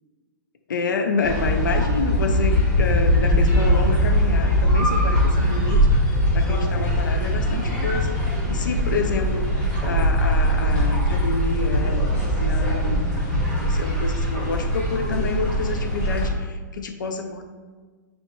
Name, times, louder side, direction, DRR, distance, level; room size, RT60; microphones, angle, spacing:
voice 1, 0.7-9.5 9.8-12.1 12.4-13.1 13.5-17.4, left 4 dB, 90° left, 5 dB, 0.5 m, -28 dB
sound 1, 1.2-16.3, equal, 10° left, 1.2 m, -21 dB
5.6 x 2.1 x 3.1 m, 1.4 s
hypercardioid pair, 135°, 10 cm